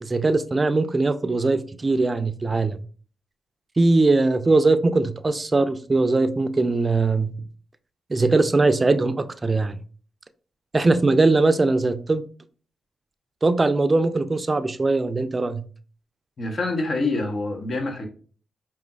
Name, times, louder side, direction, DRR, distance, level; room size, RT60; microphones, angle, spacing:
voice 1, 0.0-2.8 3.8-7.3 8.1-9.8 10.7-12.2 13.4-15.6, right 3 dB, 35° right, 0.4 m, -20 dB
voice 2, 16.4-18.1, left 2 dB, 55° left, 0.8 m, -26 dB
4.9 x 3.0 x 2.3 m
supercardioid pair, 50°, 0 cm